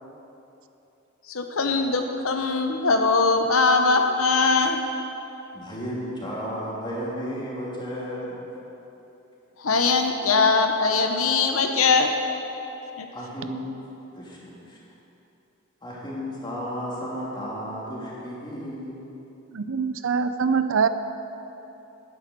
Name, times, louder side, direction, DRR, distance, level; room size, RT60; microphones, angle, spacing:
voice 1, 1.3-4.8 9.6-12.1 13.0-13.1, left 4 dB, 80° left, 4 dB, 0.9 m, -21 dB
voice 2, 5.5-8.5 13.1-13.7 14.2-14.8 15.8-19.1, equal, 20° left, -5 dB, 2.9 m, -33 dB
voice 3, 19.5-20.9, right 6 dB, 65° right, 11 dB, 0.5 m, -23 dB
11.5 x 10.0 x 6.8 m, 2.9 s
head